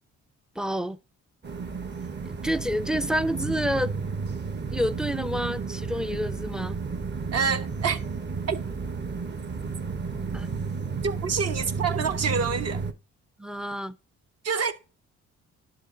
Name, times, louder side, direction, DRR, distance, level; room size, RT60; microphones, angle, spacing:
voice 1, 0.6-1.0 2.2-3.9 4.7-6.8 10.3-10.5 13.4-13.9, equal, ahead, 0.4 m, -28 dB
sound 1, 1.4-12.9, right 4 dB, 35° right, 1.1 m, -32 dB
voice 2, 7.3-8.0 8.5-8.6 11.0-12.8 14.4-14.7, right 6 dB, 55° right, 1.2 m, -27 dB
11.5 x 3.8 x 3.8 m
cardioid pair, 90°, 30 cm